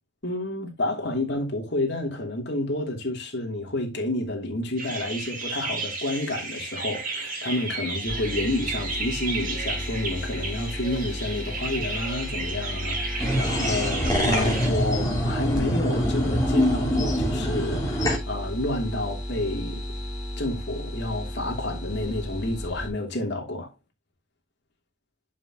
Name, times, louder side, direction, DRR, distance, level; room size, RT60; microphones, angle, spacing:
voice 1, 0.2-19.8 20.4-23.7, left 1 dB, 55° left, 2.9 m, -30 dB
sound 1, 4.8-14.7, right 3 dB, 40° right, 2.9 m, -33 dB
sound 2, 8.1-15.6 15.9-22.9, left 1 dB, 5° right, 3.0 m, -34 dB
sound 3, 13.2-18.2, equal, 15° left, 3.0 m, -25 dB
11.0 x 6.0 x 2.9 m
head